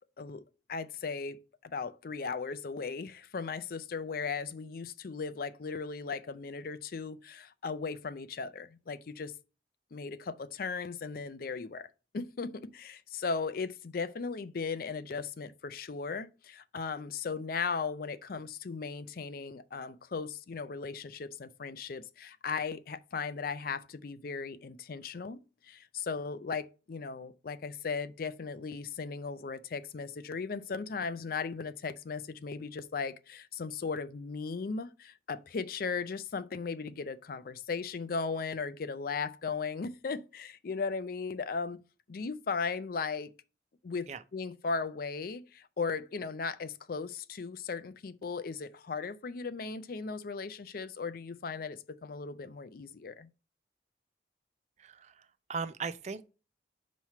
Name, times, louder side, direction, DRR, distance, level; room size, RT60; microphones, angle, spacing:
voice 1, 0.7-9.3 9.9-11.9 12.1-41.8 42.1-43.3 43.8-53.3, left 5 dB, 55° left, 0.5 m, -37 dB
voice 2, 54.8-55.1 55.5-56.2, right 5 dB, 40° right, 0.5 m, -37 dB
5.7 x 3.1 x 5.6 m
head